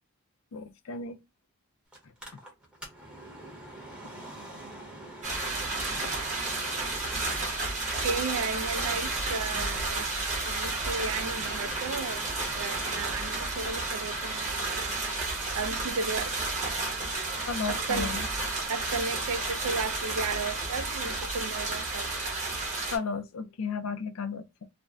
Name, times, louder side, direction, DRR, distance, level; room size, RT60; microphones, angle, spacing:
voice 1, 0.5-1.2 5.9-6.1 17.5-18.3 22.8-24.7, left 5 dB, 65° left, 0.4 m, -34 dB
Mechanical fan, 1.9-21.3 21.6-21.7, right 1 dB, 5° right, 0.7 m, -47 dB
sound 1, 5.2-23.0, right 2 dB, 35° right, 0.9 m, -32 dB
voice 2, 8.0-10.1 10.4-15.0 15.5-16.4 17.7-18.1 18.7-22.1, right 4 dB, 85° right, 0.5 m, -34 dB
2.5 x 2.1 x 3.2 m
head